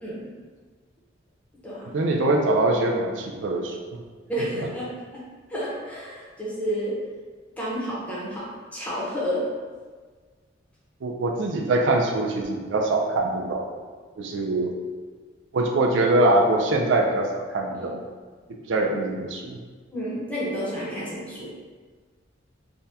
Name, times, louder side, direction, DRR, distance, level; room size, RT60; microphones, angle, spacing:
voice 1, 0.0-0.3 1.6-2.0 4.3-4.9 5.1-5.2 5.5-7.0 7.6-9.5 19.9-21.5, equal, 10° left, -8 dB, 0.8 m, -30 dB
voice 2, 1.9-4.0 4.5-4.7 11.0-13.7 14.2-14.8 15.5-18.0 18.7-19.6, right 2 dB, 75° right, 1 dB, 0.4 m, -23 dB
3.4 x 2.2 x 2.7 m, 1.5 s
head